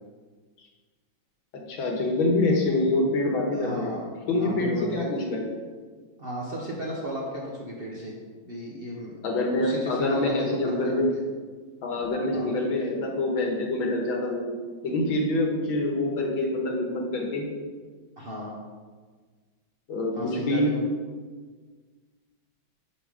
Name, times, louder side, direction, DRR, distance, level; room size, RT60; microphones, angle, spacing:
voice 1, 1.7-3.9 4.3-5.5 9.2-11.1 11.8-14.5 14.8-17.5 19.9-20.7, left 2 dB, 85° left, 0 dB, 2.1 m, -26 dB
voice 2, 3.5-4.0 4.4-5.1 6.2-8.1 8.4-9.1 9.6-11.2 12.3-12.5 18.2-18.6 20.1-20.8, equal, 40° right, -3 dB, 0.8 m, -34 dB
7.0 x 5.1 x 5.1 m, 1.5 s
omnidirectional pair, 2.2 m